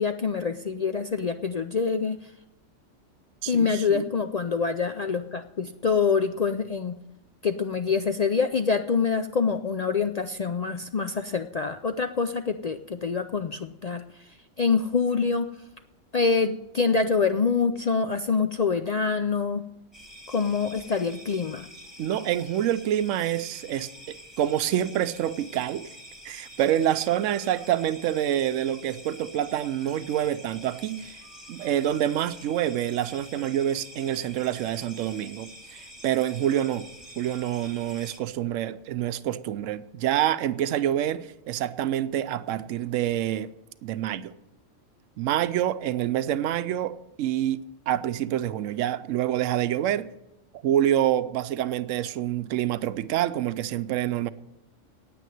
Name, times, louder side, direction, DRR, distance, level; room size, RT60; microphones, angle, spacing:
voice 1, 0.0-2.3 3.5-7.0 7.4-15.5 16.1-19.6 20.3-21.7, left 5 dB, 65° left, 0.4 m, -26 dB
voice 2, 3.4-4.1 22.0-25.9 26.2-31.2 31.5-36.9 37.2-43.5 43.8-44.3 45.2-50.1 50.6-54.3, right 11 dB, 80° right, 1.0 m, -27 dB
sound 1, 19.9-38.2, equal, ahead, 2.3 m, -47 dB
9.3 x 9.0 x 9.3 m
omnidirectional pair, 1.3 m